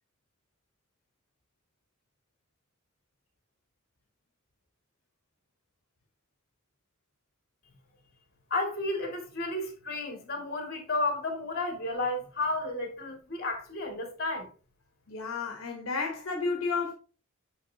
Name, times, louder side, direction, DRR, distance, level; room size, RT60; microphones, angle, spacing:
voice 1, 8.5-14.5, left 2 dB, 50° left, 2.0 m, -32 dB
voice 2, 15.1-16.9, left 4 dB, 75° left, 1.0 m, -32 dB
6.4 x 5.8 x 2.7 m
head